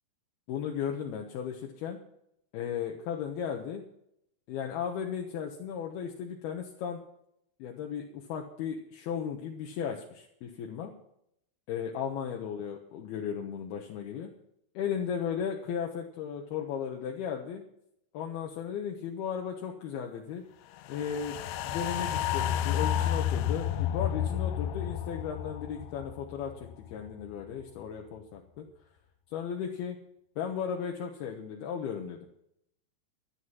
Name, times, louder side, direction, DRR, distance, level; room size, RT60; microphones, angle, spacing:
voice 1, 0.5-2.0 2.5-3.8 4.5-7.0 7.6-10.9 11.7-14.3 14.7-17.6 18.1-20.4 20.9-28.7 29.3-30.0 30.4-32.3, left 7 dB, 75° left, 1 dB, 3.1 m, -35 dB
sound 1, 20.9-27.3 27.6-27.7, left 10 dB, 90° left, 2.9 m, -31 dB
13.0 x 11.5 x 5.7 m, 0.76 s
omnidirectional pair, 4.8 m